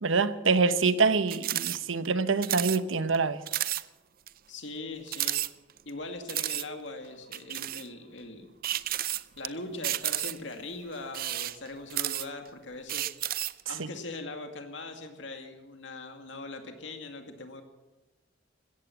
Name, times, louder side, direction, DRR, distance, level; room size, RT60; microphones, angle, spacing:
voice 1, 0.0-3.4 13.8-13.9, right 4 dB, 90° right, 13 dB, 0.9 m, -25 dB
sound 1, 1.3-1.8 2.0-2.1 2.4-2.8 3.1-3.2 3.5-3.8 4.3-4.4 5.1-5.9 6.3-6.7 7.3-7.9 8.6-9.5 9.8-10.5 11.1-12.5 12.9-13.6, right 14 dB, 50° right, 0.5 m, -31 dB
voice 2, 4.5-5.4 5.9-8.5 9.4-13.1 13.7-17.6, left 2 dB, 70° left, 5 dB, 2.3 m, -41 dB
16.5 x 14.0 x 6.0 m, 1.1 s
head